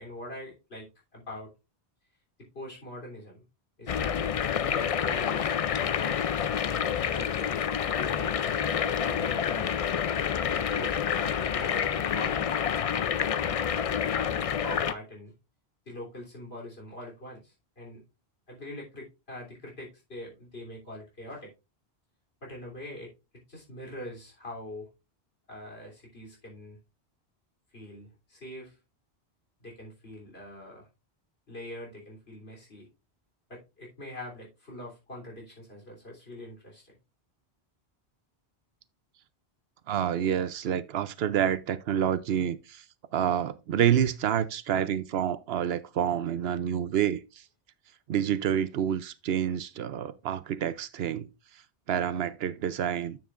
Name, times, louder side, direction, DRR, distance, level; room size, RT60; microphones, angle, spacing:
voice 1, 0.0-1.5 2.5-3.4 3.8-4.3 4.6-5.6 6.0-7.6 8.0-9.7 10.5-12.7 14.0-15.3 15.9-18.0 18.5-21.5 22.4-23.1 23.5-24.9 25.5-26.8 27.7-28.8 29.6-30.9 31.5-32.9 33.5-36.9, left 1 dB, 70° left, 3.6 m, -43 dB
sound 1, 3.9-14.9, left 8 dB, 55° left, 0.4 m, -28 dB
voice 2, 39.9-42.8 43.1-47.4 48.1-51.3 51.9-53.2, right 9 dB, 75° right, 0.8 m, -28 dB
9.4 x 7.4 x 2.5 m
omnidirectional pair, 1.1 m